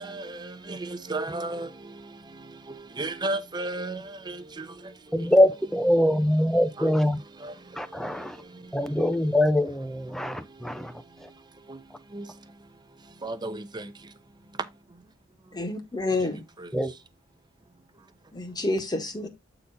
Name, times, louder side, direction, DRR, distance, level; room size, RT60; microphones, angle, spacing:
voice 1, 1.1-1.7 3.0-4.0 4.3-4.4 11.7-11.8 12.1-12.2 13.2-13.6, right 2 dB, 20° right, 0.8 m, -31 dB
voice 2, 5.1-7.2 7.8-8.4 8.7-10.9 16.7-16.9, left 1 dB, ahead, 0.6 m, -23 dB
voice 3, 15.5-16.4 18.3-19.3, left 2 dB, 20° left, 1.4 m, -29 dB
8.4 x 4.0 x 3.9 m
head